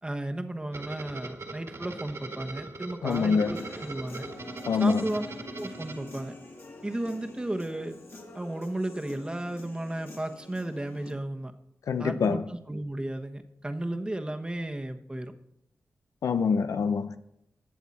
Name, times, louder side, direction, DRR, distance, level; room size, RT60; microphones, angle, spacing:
voice 1, 0.0-4.3 4.8-6.3 6.8-8.0 8.3-11.5 12.0-15.3, right 1 dB, 20° right, 1.1 m, -34 dB
sound 1, 0.7-6.7, right 3 dB, 60° right, 1.9 m, -41 dB
voice 2, 3.0-3.5 4.7-5.0 11.9-12.4 16.2-17.2, left 5 dB, 90° left, 0.7 m, -25 dB
Human voice / Guitar, 3.1-11.1, left 2 dB, 55° left, 2.9 m, -46 dB
19.0 x 7.2 x 4.2 m
cardioid pair, 70°, 5 cm